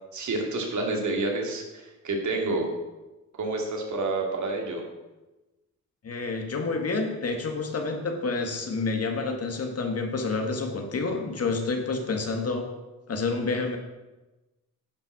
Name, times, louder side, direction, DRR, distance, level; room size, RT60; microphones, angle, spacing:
voice 1, 0.1-2.7 3.3-4.8, right 2 dB, 60° right, 1 dB, 2.5 m, -29 dB
voice 2, 6.0-12.7 13.1-13.8, left 3 dB, 50° left, 3 dB, 1.8 m, -29 dB
10.5 x 5.8 x 6.2 m, 1.1 s
cardioid pair, 95°, 33 cm